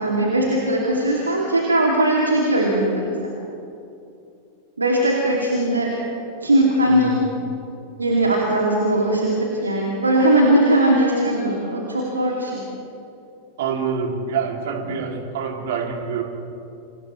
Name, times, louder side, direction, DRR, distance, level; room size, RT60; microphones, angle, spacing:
voice 1, 0.0-3.3 4.8-5.9 6.4-7.1 8.0-12.6, right 1 dB, 80° right, -2 dB, 2.7 m, -19 dB
voice 2, 6.9-7.2 13.6-16.2, right 6 dB, 55° right, 2 dB, 2.9 m, -26 dB
29.5 x 28.0 x 3.3 m, 2.6 s
figure-of-eight pair, 90°, 0 cm